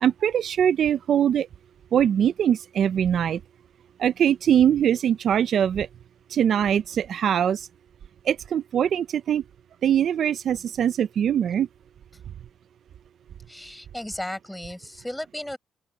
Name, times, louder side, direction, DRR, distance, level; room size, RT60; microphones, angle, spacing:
voice 1, 0.0-1.5 1.9-3.4 4.0-5.9 6.3-7.7 8.3-9.4 9.8-11.7, right 9 dB, 65° right, 0.5 m, -22 dB
voice 2, 13.5-15.6, left 1 dB, 5° left, 5.3 m, -35 dB
open air
cardioid pair, 90°, 0 cm